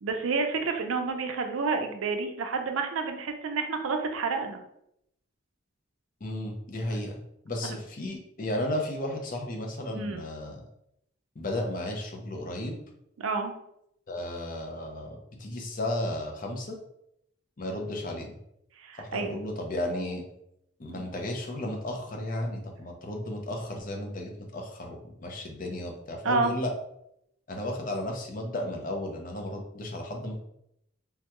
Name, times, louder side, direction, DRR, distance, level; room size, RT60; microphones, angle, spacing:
voice 1, 0.0-4.6 7.6-7.8 10.0-10.2 13.2-13.5 18.8-19.4 21.0-21.1 26.2-26.5, right 4 dB, 90° right, 5 dB, 0.5 m, -29 dB
voice 2, 6.2-7.2 7.4-10.6 11.4-12.8 14.1-16.8 17.6-18.3 19.0-20.2 20.8-26.7 27.5-30.4, left 1 dB, 45° left, 2 dB, 0.5 m, -34 dB
3.4 x 2.2 x 2.9 m, 0.77 s
head